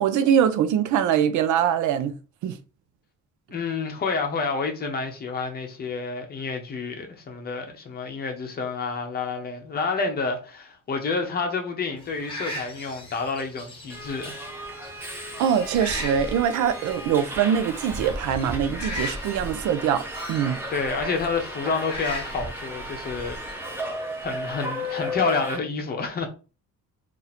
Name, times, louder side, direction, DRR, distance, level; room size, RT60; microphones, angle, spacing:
voice 1, 0.0-2.2 2.4-2.6 15.4-20.6, right 8 dB, 70° right, 0.5 m, -23 dB
voice 2, 3.5-14.4 20.7-23.8 24.2-26.3, left 4 dB, 30° left, 0.7 m, -29 dB
sound 1, 12.0-24.3, left 2 dB, 15° left, 1.2 m, -40 dB
Subway metro underground, 13.9-25.6, equal, 5° right, 0.7 m, -34 dB
2.8 x 2.6 x 4.1 m
cardioid pair, 170°, 31 cm